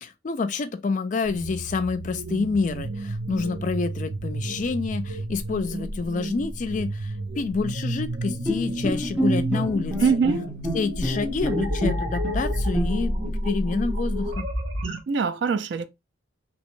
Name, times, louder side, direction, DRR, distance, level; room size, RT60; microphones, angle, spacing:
voice 1, 0.0-10.0 10.7-14.5, left 4 dB, 40° left, 0.3 m, -28 dB
sound 1, 1.2-15.0, right 1 dB, 80° right, 1.0 m, -30 dB
Bowed string instrument, 8.4-13.3, right 1 dB, 5° right, 0.5 m, -29 dB
voice 2, 10.0-10.5 15.1-15.9, right 5 dB, 60° right, 0.4 m, -23 dB
2.8 x 2.1 x 3.0 m
head